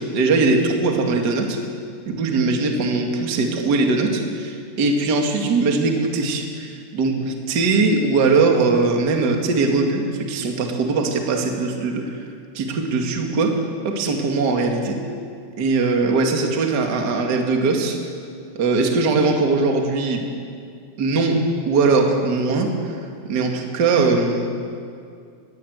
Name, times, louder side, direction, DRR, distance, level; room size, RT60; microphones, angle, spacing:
voice 1, 0.0-1.6 2.0-12.2 12.5-13.5 13.8-15.0 15.6-18.0 18.5-20.2 21.0-23.0 23.3-24.5, right 3 dB, 40° right, 2 dB, 1.5 m, -20 dB
21.0 x 16.0 x 8.0 m, 2.3 s
omnidirectional pair, 5.0 m